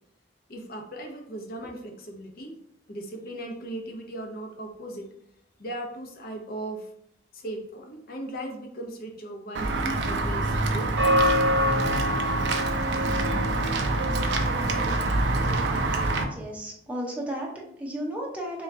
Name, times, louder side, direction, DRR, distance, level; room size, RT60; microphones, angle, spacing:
voice 1, 0.5-2.5 2.9-5.1 5.6-6.9 7.3-10.9, right 1 dB, 55° left, 2 dB, 0.8 m, -37 dB
Walk footsteps / Bell, 9.5-16.2, right 1 dB, 70° right, 0.5 m, -24 dB
voice 2, 16.2-18.6, equal, 10° right, -3 dB, 0.7 m, -34 dB
3.4 x 3.0 x 3.6 m, 0.72 s
head